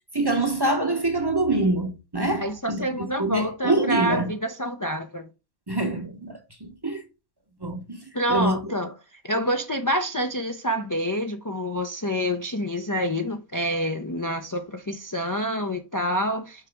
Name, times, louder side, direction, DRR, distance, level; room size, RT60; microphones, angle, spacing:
voice 1, 0.1-4.3 5.7-7.0 7.6-8.0 8.3-8.6, right 2 dB, 20° right, 0.9 m, -25 dB
voice 2, 2.4-5.3 8.1-8.9 9.2-16.7, equal, 20° left, 0.5 m, -27 dB
6.4 x 4.9 x 3.5 m
omnidirectional pair, 1.5 m